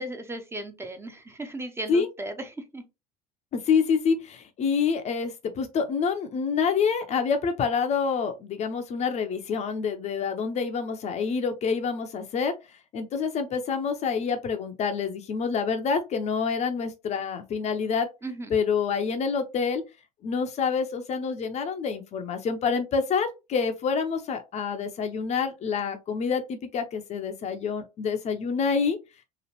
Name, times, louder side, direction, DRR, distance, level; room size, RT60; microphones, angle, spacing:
voice 1, 0.0-2.8 18.2-18.6, right 1 dB, 15° right, 0.6 m, -36 dB
voice 2, 3.5-12.5 12.9-18.1 18.5-19.8 20.2-29.0, left 5 dB, 35° left, 0.5 m, -27 dB
3.0 x 2.4 x 2.9 m
figure-of-eight pair, 65°, 19 cm